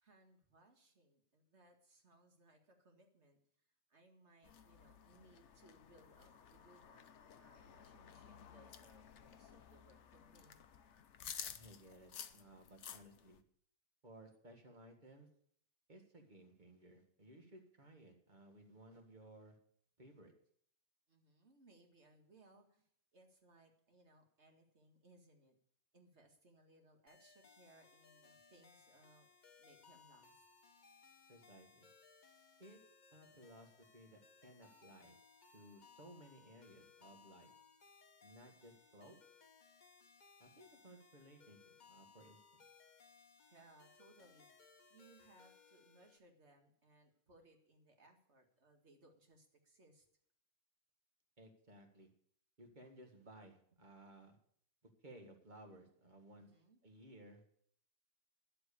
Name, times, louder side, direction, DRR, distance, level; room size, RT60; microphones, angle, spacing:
voice 1, 0.0-3.4 3.9-10.6 21.1-25.6 25.9-29.3 29.6-30.4 43.5-44.5 44.9-50.1 52.7-52.8 56.4-56.8, right 2 dB, 50° right, 3 dB, 2.2 m, -67 dB
sound 1, 4.4-13.4, left 8 dB, 60° left, 1.0 m, -54 dB
voice 2, 11.5-13.4 14.0-15.3 15.9-19.6 20.0-20.3 31.3-31.9 32.6-32.8 33.1-35.2 35.5-37.5 38.2-39.2 40.4-42.7 51.4-52.1 52.6-54.4 55.0-56.5 56.8-57.4, right 1 dB, 35° right, 4 dB, 1.9 m, -59 dB
sound 2, 27.1-46.2, left 5 dB, 35° left, 1.0 m, -65 dB
11.5 x 7.8 x 8.4 m, 0.65 s
omnidirectional pair, 1.5 m